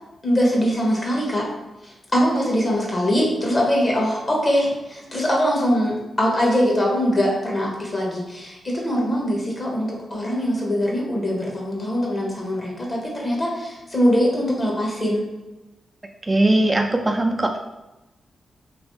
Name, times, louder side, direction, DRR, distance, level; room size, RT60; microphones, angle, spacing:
voice 1, 0.2-1.5 1.8-15.3, equal, 40° left, -2 dB, 1.3 m, -22 dB
voice 2, 16.3-17.6, right 1 dB, 25° right, 3 dB, 0.3 m, -19 dB
3.1 x 2.6 x 3.1 m, 1.0 s
supercardioid pair, 45°, 0 cm